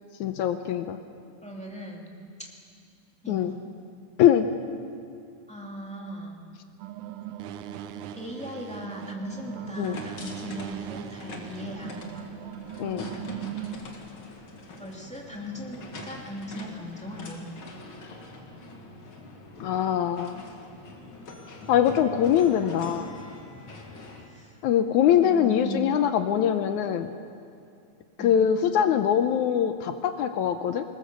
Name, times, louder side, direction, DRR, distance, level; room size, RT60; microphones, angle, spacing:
voice 1, 0.2-1.0 3.3-3.5 4.2-4.5 9.8-10.0 12.8-13.1 19.6-20.4 21.7-23.1 24.6-27.1 28.2-30.9, left 9 dB, 75° left, 9 dB, 2.0 m, -23 dB
voice 2, 1.4-2.1 2.4-2.5 3.2-3.6 5.5-6.4 8.1-12.0 14.8-17.5 24.2-24.6 25.2-26.1 28.2-28.4, equal, ahead, -1 dB, 2.0 m, -38 dB
sound 1, 6.8-13.8, right 11 dB, 75° right, 2.2 m, -39 dB
sound 2, 9.4-24.3, left 2 dB, 45° left, 2.3 m, -43 dB
21.0 x 20.5 x 6.8 m, 2.4 s
omnidirectional pair, 3.7 m